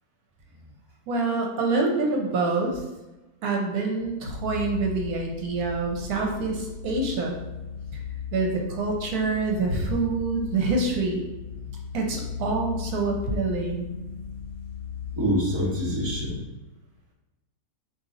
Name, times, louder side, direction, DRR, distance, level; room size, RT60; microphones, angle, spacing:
voice 1, 1.1-2.8 3.4-7.4 8.3-11.2 11.9-13.9, right 3 dB, 80° right, 1 dB, 1.2 m, -26 dB
sound 1, 4.2-16.4, left 6 dB, 85° left, 1.1 m, -36 dB
voice 2, 15.1-16.4, equal, 20° right, -6 dB, 1.0 m, -26 dB
4.1 x 2.8 x 3.9 m, 1.1 s
omnidirectional pair, 1.6 m